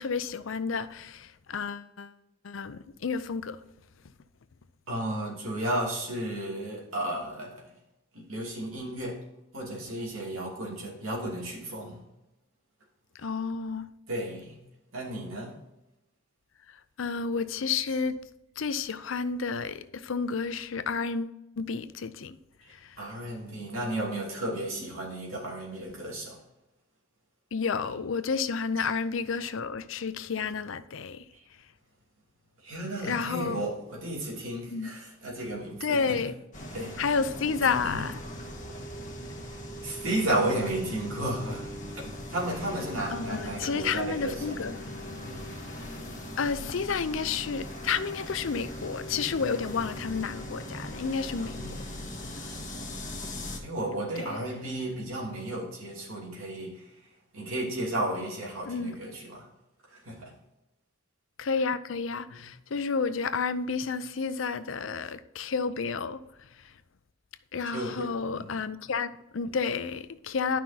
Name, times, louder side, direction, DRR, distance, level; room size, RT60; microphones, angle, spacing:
voice 1, 0.0-2.1 2.4-3.6 13.1-13.9 16.7-18.2 18.6-22.4 22.7-23.0 27.5-31.2 33.0-33.6 34.7-34.9 35.8-36.3 37.0-38.2 43.1-44.9 46.4-51.6 54.2-54.4 58.6-59.0 61.4-66.2 67.5-70.6, left 5 dB, 75° left, 0.5 m, -31 dB
voice 2, 4.9-7.7 8.1-9.2 9.5-12.0 14.1-14.6 14.9-15.5 23.0-26.4 28.8-28.9 32.6-36.2 36.7-36.9 37.8-38.0 39.5-44.4 45.3-45.4 51.6-51.8 53.6-56.9 57.3-59.5 59.9-60.3 62.3-62.4 67.7-68.1 68.4-68.5, right 1 dB, 85° right, 2.8 m, -33 dB
sound 1, 36.5-53.6, equal, 40° left, 1.5 m, -40 dB
11.5 x 5.8 x 2.9 m
head